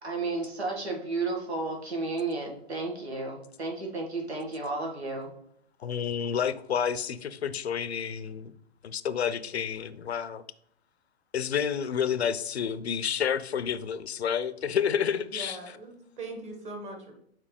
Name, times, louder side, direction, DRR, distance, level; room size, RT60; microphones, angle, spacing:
voice 1, 0.0-5.3, right 3 dB, 80° right, 2.0 m, -32 dB
voice 2, 5.8-8.5 8.8-10.4 11.3-15.6, left 8 dB, 75° left, 0.6 m, -29 dB
voice 3, 15.3-17.1, right 2 dB, 20° right, 1.6 m, -40 dB
7.5 x 4.7 x 3.3 m
figure-of-eight pair, 110°, 32 cm